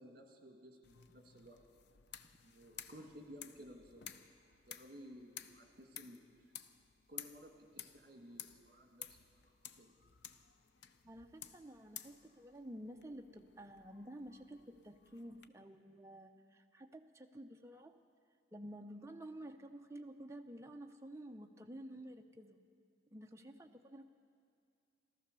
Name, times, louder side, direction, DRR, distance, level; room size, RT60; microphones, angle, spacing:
voice 1, 0.0-1.6 2.4-4.0 4.5-6.2 7.1-9.5 9.8-9.9, equal, 50° right, 2 dB, 2.0 m, -56 dB
sound 1, 0.8-15.5, left 9 dB, 70° left, 0.6 m, -55 dB
voice 2, 11.0-18.0 18.5-22.6 23.1-24.0, right 1 dB, 15° right, 5 dB, 0.6 m, -51 dB
14.5 x 13.5 x 6.8 m, 2.3 s
head